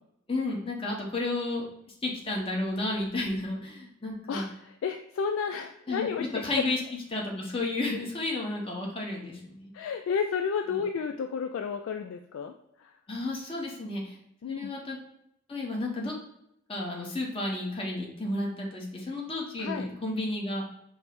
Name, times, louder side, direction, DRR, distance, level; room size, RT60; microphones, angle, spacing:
voice 1, 0.3-1.7 2.0-4.4 5.9-6.8 7.1-9.7 13.1-14.2 14.4-15.0 15.5-16.1 16.7-20.6, left 2 dB, 25° left, -1 dB, 0.9 m, -32 dB
voice 2, 4.3-6.4 9.7-12.5 12.8-12.9 14.4-14.7 19.6-19.9, left 6 dB, 80° left, 5 dB, 0.3 m, -32 dB
5.2 x 2.0 x 4.5 m, 0.79 s
head